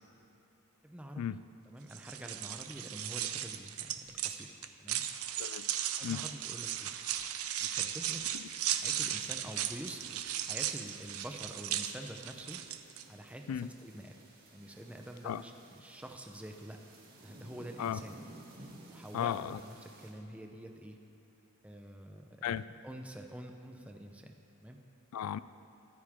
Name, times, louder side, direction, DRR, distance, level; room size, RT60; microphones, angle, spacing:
voice 1, 0.8-1.4 1.7-5.0 6.0-6.9 7.6-8.2 8.7-12.6 13.1-14.2 14.5-16.8 17.2-18.1 18.9-21.0 21.6-24.8, right 1 dB, 5° right, 3 dB, 0.7 m, -47 dB
sound 1, 1.9-13.0, right 11 dB, 75° right, 0.6 m, -36 dB
voice 2, 5.4-5.7 6.0-6.2 8.3-8.4 13.5-13.7 15.2-15.4 17.8-18.0 19.1-19.6 22.4-22.6 25.1-25.4, left 9 dB, 80° left, 16 dB, 0.3 m, -35 dB
sound 2, 8.1-20.1, right 2 dB, 45° right, 2.1 m, -57 dB
23.0 x 9.7 x 3.7 m, 2.9 s
head